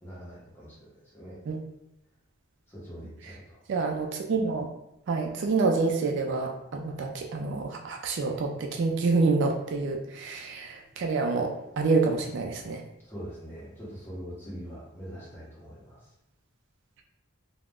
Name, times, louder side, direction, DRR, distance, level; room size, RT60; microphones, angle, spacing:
voice 1, 0.0-1.4 2.7-3.6 13.0-16.1, equal, 10° left, -7 dB, 0.9 m, -43 dB
voice 2, 3.7-4.7 5.1-12.8, right 4 dB, 55° right, 2 dB, 0.3 m, -27 dB
2.4 x 2.1 x 3.4 m, 0.85 s
head